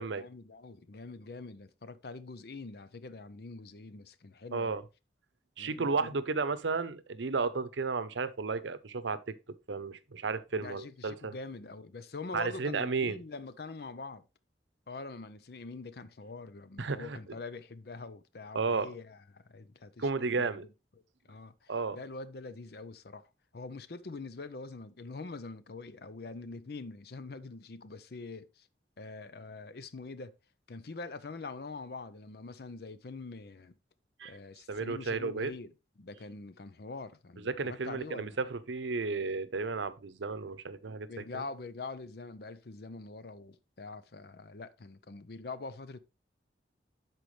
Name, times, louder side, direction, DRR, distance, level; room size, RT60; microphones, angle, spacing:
voice 1, 0.1-4.8 5.6-6.2 10.5-14.2 14.9-20.6 21.3-23.3 23.5-28.7 29.0-30.3 30.7-33.7 34.2-35.7 36.0-38.4 41.1-46.0, left 3 dB, 60° left, 0.6 m, -44 dB
voice 2, 4.5-4.8 5.6-9.3 9.7-11.3 12.3-13.2 16.8-17.2 18.5-18.9 20.0-20.6 21.7-22.0 34.2-34.3 34.7-35.5 37.4-41.1 41.3-41.4, right 4 dB, 85° right, 0.7 m, -33 dB
11.5 x 4.5 x 3.2 m
head